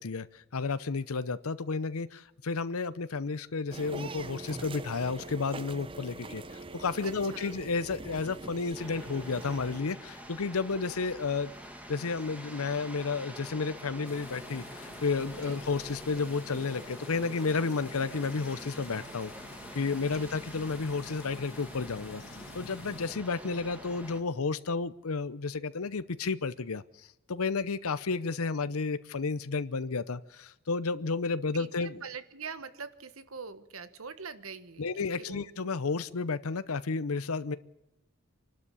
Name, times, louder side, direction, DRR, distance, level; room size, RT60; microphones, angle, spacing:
voice 1, 0.0-11.5 11.9-19.3 19.7-22.2 22.5-32.0 34.8-37.6, left 4 dB, 85° left, 14 dB, 0.7 m, -32 dB
sound 1, 3.7-9.8, right 2 dB, 25° right, 0.7 m, -43 dB
voice 2, 7.0-7.5 15.3-15.6 20.0-20.3 31.5-35.5, right 5 dB, 75° right, 13 dB, 1.4 m, -44 dB
sound 2, 8.7-24.2, equal, 5° right, 1.8 m, -46 dB
sound 3, 14.0-23.1, left 3 dB, 60° left, 1.9 m, -50 dB
25.5 x 12.0 x 8.5 m, 0.86 s
head